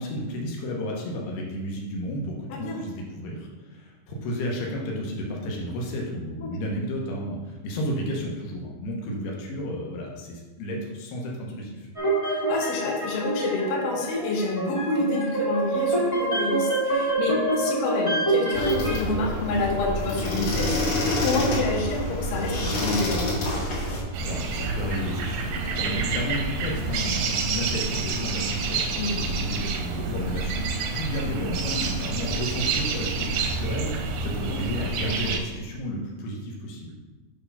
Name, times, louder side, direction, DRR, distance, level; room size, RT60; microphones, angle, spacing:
voice 1, 0.0-11.9 24.2-28.9 29.2-30.6 30.9-36.9, equal, 85° left, -2 dB, 3.0 m, -32 dB
voice 2, 2.5-2.8 6.4-6.6 12.3-23.3 25.8-26.0 29.0-29.1 34.5-34.7, left 2 dB, 65° left, -2 dB, 2.6 m, -28 dB
sound 1, 11.9-18.9, right 2 dB, 10° left, 1.0 m, -26 dB
sound 2, 18.5-24.0, left 1 dB, 50° left, 2.8 m, -27 dB
sound 3, 24.1-35.4, right 4 dB, 80° right, 1.8 m, -28 dB
8.7 x 3.3 x 5.5 m, 1.2 s
omnidirectional pair, 4.4 m